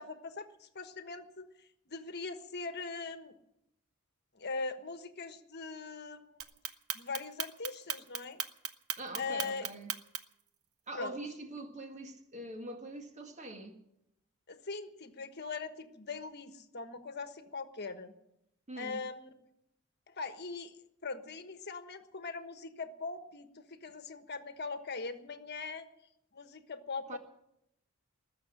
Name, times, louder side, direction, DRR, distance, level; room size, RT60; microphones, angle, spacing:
voice 1, 0.0-3.4 4.3-6.5 6.9-8.4 9.1-9.7 10.9-11.2 14.5-18.1 18.8-19.3 20.1-20.8 21.0-25.8 26.3-27.2, left 4 dB, 50° left, 1.3 m, -41 dB
Clock, 6.4-10.4, right 10 dB, 85° right, 1.1 m, -36 dB
voice 2, 9.0-9.9 10.9-13.8 18.7-19.0 27.1-27.2, right 2 dB, 35° right, 1.8 m, -43 dB
20.0 x 6.9 x 9.9 m
head